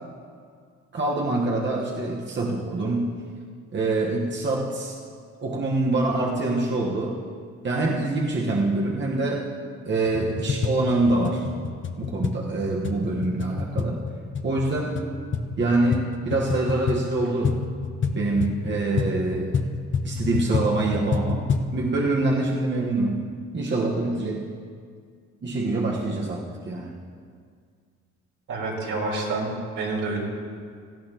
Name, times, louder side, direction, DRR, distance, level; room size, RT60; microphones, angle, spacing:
voice 1, 0.9-3.2 3.7-5.0 5.4-7.2 7.6-9.5 9.8-11.5 12.0-14.0 14.4-15.0 15.6-17.6 18.1-19.6 20.0-21.4 21.7-23.2 23.5-24.5 25.4-26.9, right 2 dB, 40° right, -2 dB, 1.4 m, -25 dB
sound 1, 10.1-21.7, left 5 dB, 40° left, 0.9 m, -29 dB
voice 2, 28.5-30.2, right 3 dB, 75° right, -4 dB, 4.1 m, -28 dB
18.0 x 14.5 x 3.0 m, 2.1 s
cardioid pair, 90°, 30 cm